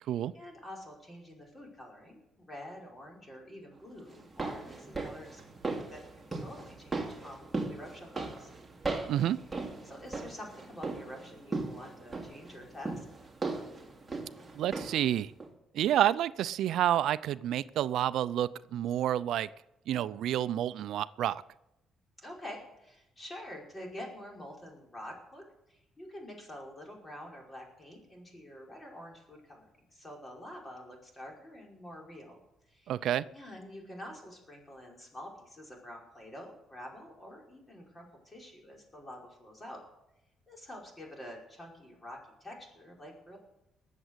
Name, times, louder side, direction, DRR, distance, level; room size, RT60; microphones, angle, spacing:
voice 1, 0.0-5.4 5.9-8.5 9.8-13.0 22.2-25.4 25.7-32.4 32.7-32.9 33.3-39.8 40.5-43.4, left 1 dB, 25° left, -1 dB, 5.2 m, -47 dB
sound 1, 4.1-15.1 15.4-15.5, right 3 dB, 15° right, 2.7 m, -38 dB
voice 2, 14.5-15.3 15.7-19.5 19.9-21.4 32.9-33.2, right 11 dB, 75° right, 16 dB, 0.4 m, -29 dB
19.5 x 7.4 x 8.1 m, 0.89 s
cardioid pair, 110°, 0 cm